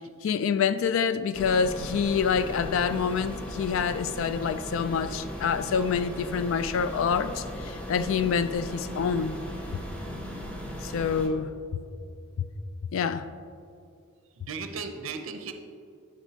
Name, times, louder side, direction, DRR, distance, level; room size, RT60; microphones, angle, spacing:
voice 1, 0.2-9.3 10.8-11.5 12.9-13.3, left 6 dB, 65° left, 0.3 m, -27 dB
sound 1, 1.3-11.3, equal, 5° left, 0.7 m, -37 dB
voice 2, 14.4-15.5, right 5 dB, 65° right, 0.5 m, -36 dB
12.0 x 5.3 x 2.8 m
head